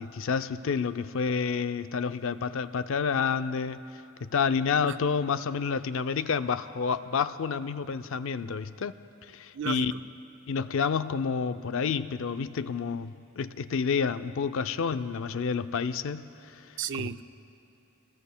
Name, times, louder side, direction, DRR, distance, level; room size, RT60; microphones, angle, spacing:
voice 1, 0.0-3.8 4.2-9.0 9.3-9.9 10.5-16.7 17.0-17.1, left 6 dB, 60° left, 12 dB, 0.4 m, -29 dB
voice 2, 9.5-10.0 16.8-17.2, right 8 dB, 55° right, 12 dB, 0.4 m, -34 dB
28.5 x 19.5 x 2.2 m, 2.7 s
head